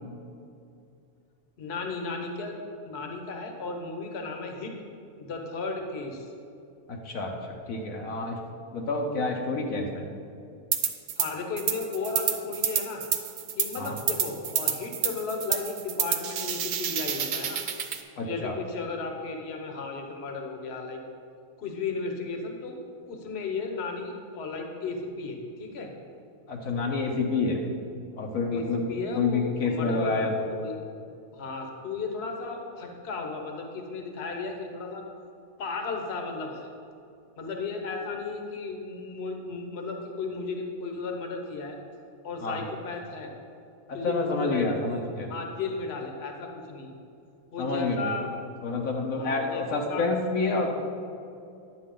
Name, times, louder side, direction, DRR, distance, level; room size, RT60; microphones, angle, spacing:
voice 1, 1.6-2.5 2.8-4.7 5.2-6.3 11.2-13.0 13.5-17.6 18.2-21.0 21.6-22.8 23.1-25.9 28.5-30.8 31.3-35.0 35.6-36.7 37.4-41.8 42.2-43.3 43.9-45.0 45.3-46.9 47.5-48.3 49.1-49.6 49.9-50.0 50.4-50.8, left 4 dB, 50° left, 3 dB, 1.2 m, -34 dB
voice 2, 6.9-8.4 8.7-10.1 13.8-14.0 18.2-18.5 26.5-27.6 28.2-30.3 42.4-42.6 43.9-45.3 47.6-48.1 48.6-50.8, left 3 dB, 75° left, 0 dB, 1.2 m, -28 dB
sound 1, 10.7-11.3 11.6-18.0, right 8 dB, 70° right, 1.1 m, -29 dB
10.5 x 7.7 x 3.8 m, 2.5 s
omnidirectional pair, 1.5 m